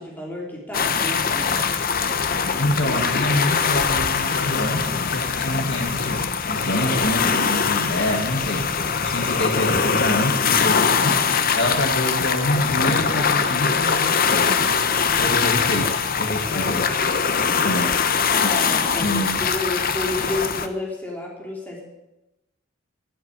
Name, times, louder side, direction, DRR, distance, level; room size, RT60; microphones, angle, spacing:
voice 1, 0.0-1.6 15.1-15.4 16.5-17.1 18.4-21.8, left 1 dB, 10° left, -3 dB, 3.6 m, -31 dB
sound 1, 0.7-20.7, left 6 dB, 45° left, 0.9 m, -22 dB
voice 2, 2.6-14.8 15.1-16.9 17.6-18.0 19.0-19.4, left 1 dB, 60° left, 3 dB, 1.8 m, -26 dB
13.0 x 8.5 x 8.9 m, 0.95 s
head